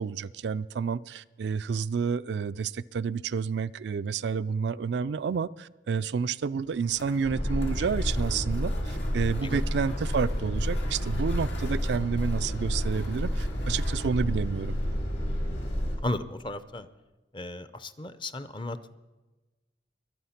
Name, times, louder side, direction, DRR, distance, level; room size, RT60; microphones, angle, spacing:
voice 1, 0.0-14.8, right 6 dB, 70° right, 0.4 m, -30 dB
sound 1, 6.6-16.0, left 2 dB, 80° left, 2.2 m, -47 dB
sound 2, 7.2-16.0, equal, 65° left, 3.7 m, -30 dB
voice 2, 16.0-16.9 17.3-18.9, left 2 dB, 25° left, 0.6 m, -34 dB
22.5 x 8.4 x 5.8 m
head